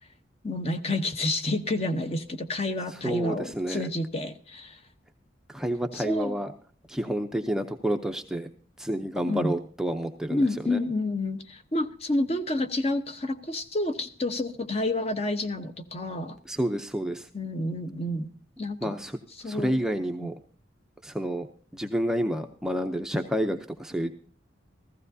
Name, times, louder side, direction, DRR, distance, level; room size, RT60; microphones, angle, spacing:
voice 1, 0.4-4.8 5.9-6.4 9.3-9.5 10.3-16.4 17.3-18.3 18.6-19.0 19.4-19.8 20.2-20.3, left 2 dB, 30° left, 8 dB, 0.8 m, -29 dB
voice 2, 3.0-3.9 5.5-6.5 6.9-8.5 8.8-10.8 16.5-17.3 18.8-19.2 19.4-20.3 21.0-21.5 21.7-24.1, equal, 5° right, 5 dB, 0.5 m, -29 dB
15.0 x 15.0 x 2.7 m, 0.42 s
head